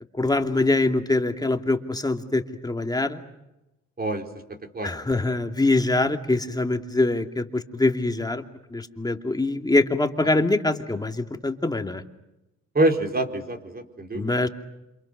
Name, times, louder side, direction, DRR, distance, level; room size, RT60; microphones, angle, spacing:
voice 1, 0.2-3.2 4.8-8.4 8.7-12.0 14.1-14.5, left 2 dB, 15° left, 5 dB, 2.6 m, -24 dB
voice 2, 12.7-14.3, right 1 dB, 30° right, 4 dB, 4.3 m, -25 dB
29.5 x 27.5 x 6.7 m, 0.95 s
cardioid pair, 90°, 30 cm